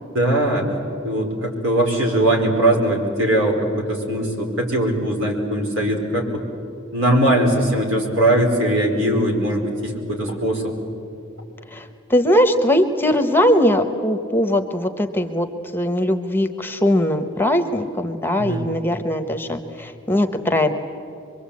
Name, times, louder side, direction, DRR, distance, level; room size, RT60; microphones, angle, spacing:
voice 1, 0.1-0.7 1.0-6.4 6.9-10.7 18.4-18.6, right 1 dB, 70° right, 0 dB, 4.6 m, -20 dB
voice 2, 11.7-15.5 15.7-20.7, left 1 dB, 10° left, 7 dB, 1.0 m, -20 dB
25.0 x 23.0 x 8.5 m, 2.7 s
head